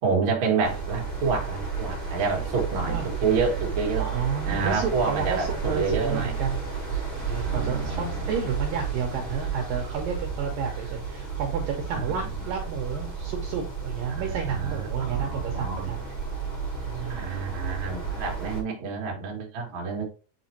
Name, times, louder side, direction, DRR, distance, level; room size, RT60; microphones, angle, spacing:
voice 1, 0.0-4.1 4.4-6.4 7.4-8.3 11.9-12.1 14.1-15.9 17.1-20.0, right 5 dB, 50° right, 1.5 m, -28 dB
sound 1, 0.6-18.6, right 5 dB, 25° left, 2.1 m, -32 dB
voice 2, 4.0-6.6 7.3-16.1 16.9-17.4, right 7 dB, 75° right, 2.2 m, -31 dB
8.1 x 4.1 x 2.8 m
omnidirectional pair, 4.8 m